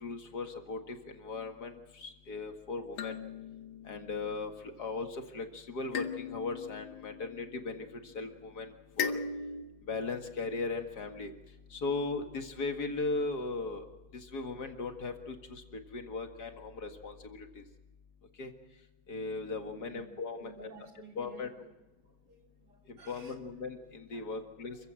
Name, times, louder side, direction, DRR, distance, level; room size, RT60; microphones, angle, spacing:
voice 1, 0.0-3.2 3.8-4.5 4.8-7.9 8.1-9.1 9.9-11.3 11.7-13.9 14.1-17.6 18.4-18.5 19.1-20.7 21.2-21.5 22.9-24.8, left 3 dB, 55° left, 6 dB, 2.4 m, -38 dB
sound 1, 3.0-4.6 5.9-8.0 9.0-9.6, left 5 dB, 75° left, 2.1 m, -39 dB
voice 2, 20.4-21.5 22.0-23.4 24.1-24.5, right 3 dB, 55° right, 2 dB, 3.8 m, -53 dB
27.5 x 15.5 x 7.7 m, 1.0 s
omnidirectional pair, 2.2 m